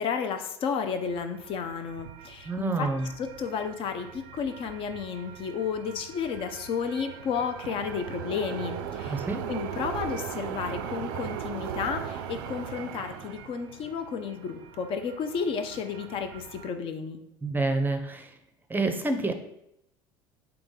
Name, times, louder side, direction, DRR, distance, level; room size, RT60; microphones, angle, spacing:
voice 1, 0.0-2.9 3.2-17.2, left 6 dB, 50° left, 7 dB, 0.5 m, -32 dB
sound 1, 0.8-16.7, right 8 dB, 75° right, 0.4 m, -39 dB
voice 2, 2.4-3.1 9.0-9.4 17.4-18.3 18.7-19.3, right 3 dB, 15° right, 6 dB, 0.6 m, -28 dB
3.8 x 2.9 x 3.8 m, 0.80 s
hypercardioid pair, 75°, 12 cm